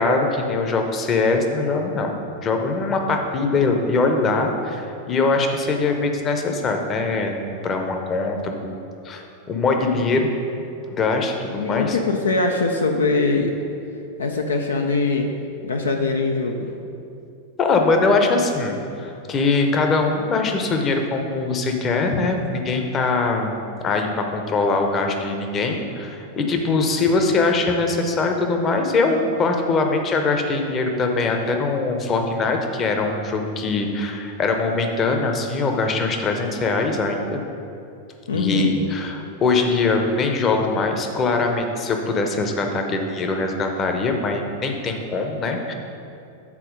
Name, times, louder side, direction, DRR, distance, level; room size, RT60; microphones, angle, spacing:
voice 1, 0.0-2.1 2.4-10.3 10.9-12.0 17.6-23.6 23.8-37.4 38.3-45.7, left 3 dB, 25° left, 4 dB, 0.8 m, -22 dB
voice 2, 11.6-13.5 14.2-15.3 15.6-16.7 38.3-38.7, left 3 dB, 70° left, 3 dB, 0.5 m, -22 dB
8.5 x 4.3 x 5.2 m, 2.6 s
figure-of-eight pair, 90°, 0 cm